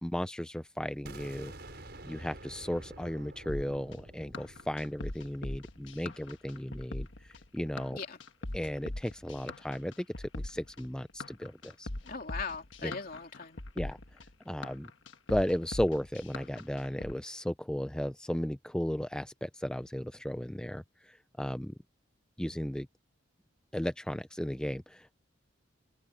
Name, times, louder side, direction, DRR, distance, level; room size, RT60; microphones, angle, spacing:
voice 1, 0.0-1.8 2.0-8.0 8.5-11.9 12.8-12.9 13.8-14.0 14.5-14.9 15.3-21.7 22.4-22.9 23.7-25.2, equal, 5° left, 0.4 m, -35 dB
sound 1, 1.0-6.8, right 1 dB, 55° right, 7.1 m, -50 dB
sound 2, 3.5-17.1, left 1 dB, 65° left, 1.5 m, -41 dB
voice 2, 12.0-13.6, left 5 dB, 45° left, 3.0 m, -39 dB
head